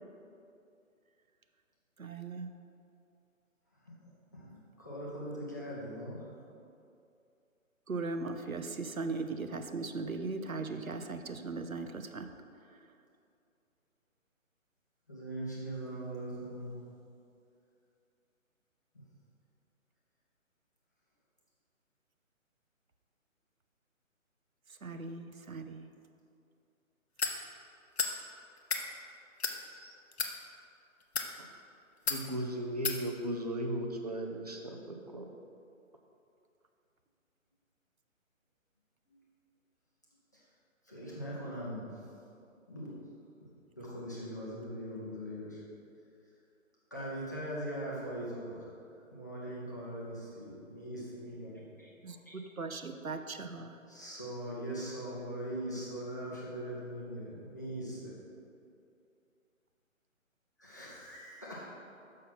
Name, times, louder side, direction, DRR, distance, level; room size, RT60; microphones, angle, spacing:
voice 1, 2.0-2.5 7.9-12.3 12.6-12.8 24.7-25.9 52.0-53.8, right 3 dB, 85° right, 7 dB, 0.7 m, -39 dB
voice 2, 3.8-4.5 4.8-6.3 15.1-16.7 39.1-39.2 40.3-40.4 40.8-42.0 42.7-43.0 43.4-43.5 43.8-45.6 46.9-48.7 49.1-51.9 52.3-52.4 53.9-58.2 60.6-61.7, right 1 dB, 15° left, -7 dB, 0.6 m, -41 dB
sound 1, 27.2-27.4 28.0-28.2 28.6-28.8 29.4-29.6 30.1-30.3 31.0-31.3 32.1-32.2 32.8-33.0, left 5 dB, 50° left, 0.8 m, -32 dB
voice 3, 32.1-35.2, right 1 dB, 30° right, 2 dB, 0.5 m, -36 dB
6.4 x 5.7 x 5.7 m, 2.6 s
figure-of-eight pair, 145°, 41 cm